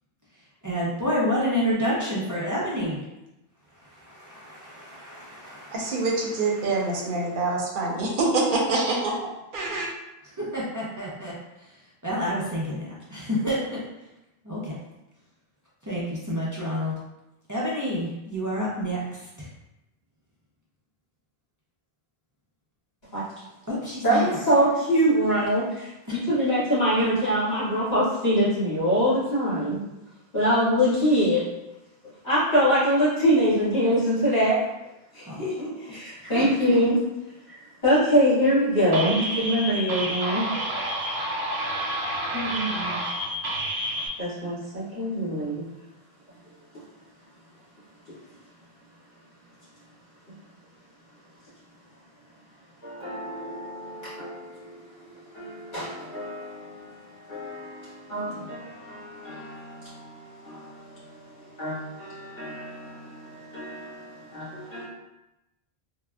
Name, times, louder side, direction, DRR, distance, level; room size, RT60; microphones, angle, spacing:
voice 1, 0.6-3.0 3.8-6.0 10.4-11.7 12.0-13.6 14.4-14.7 15.8-16.9 17.5-19.5 23.7-24.3 26.1-26.2 35.2-35.6 36.4-36.5, equal, 30° right, 0.3 m, -29 dB
voice 2, 5.7-9.9, right 3 dB, 60° right, 0.7 m, -26 dB
voice 3, 24.0-29.8 30.3-31.4 32.2-34.6 35.1-37.0 37.5-40.4 42.3-43.0 44.2-45.7 48.1-48.2 52.8-64.8, equal, 45° left, 1.8 m, -25 dB
sound 1, 38.9-44.1, right 1 dB, 85° right, 0.8 m, -29 dB
3.5 x 2.0 x 2.2 m
omnidirectional pair, 1.1 m